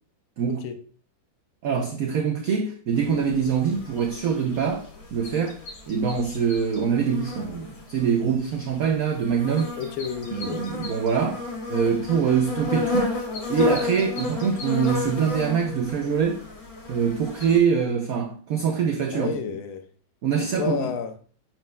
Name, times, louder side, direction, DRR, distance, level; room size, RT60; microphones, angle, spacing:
voice 1, 0.5-0.8 9.8-10.7 19.1-19.9 20.4-21.2, left 6 dB, 90° left, 1.5 m, -31 dB
voice 2, 1.6-5.6 5.9-9.7 10.3-11.4 11.7-13.2 13.5-16.4 16.9-19.3 20.2-20.9, right 6 dB, 75° right, 0.8 m, -24 dB
sound 1, 3.0-17.6, left 3 dB, 75° left, 2.3 m, -32 dB
10.5 x 4.4 x 2.3 m
omnidirectional pair, 2.2 m